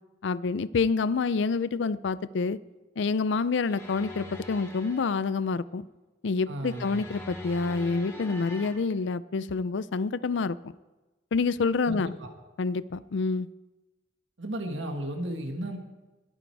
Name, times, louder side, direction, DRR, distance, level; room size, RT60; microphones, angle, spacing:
voice 1, 0.2-2.6 3.0-5.9 6.2-10.6 11.3-12.1 12.6-13.5, left 4 dB, 70° left, 0.5 m, -27 dB
sound 1, 3.6-5.3 6.7-8.7, left 2 dB, 15° left, 3.3 m, -42 dB
voice 2, 6.5-7.0 11.9-12.3 14.4-15.8, right 1 dB, 75° right, 1.9 m, -34 dB
21.5 x 9.3 x 4.7 m
head